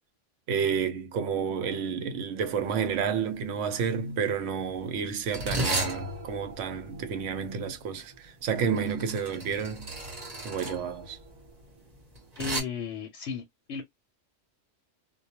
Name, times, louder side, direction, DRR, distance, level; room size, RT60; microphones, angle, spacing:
voice 1, 0.5-9.9 10.4-11.2, right 6 dB, 80° right, 0.9 m, -30 dB
sound 1, 2.6-2.7 3.0-3.4 4.1-12.6, right 1 dB, 35° right, 0.9 m, -35 dB
voice 2, 12.4-13.8, left 6 dB, 70° left, 0.8 m, -35 dB
2.2 x 2.2 x 2.8 m
omnidirectional pair, 1.3 m